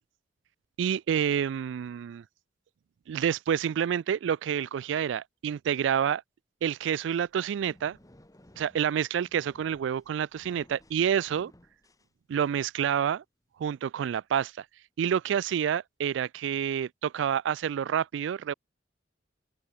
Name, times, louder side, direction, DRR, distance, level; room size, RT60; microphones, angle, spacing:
voice 1, 0.8-2.2 3.1-6.2 6.6-8.0 8.6-11.5 12.3-13.2 13.6-14.7 15.0-18.5, right 8 dB, 80° right, 0.3 m, -28 dB
sound 1, 7.0-12.7, left 1 dB, 20° left, 1.8 m, -58 dB
open air
head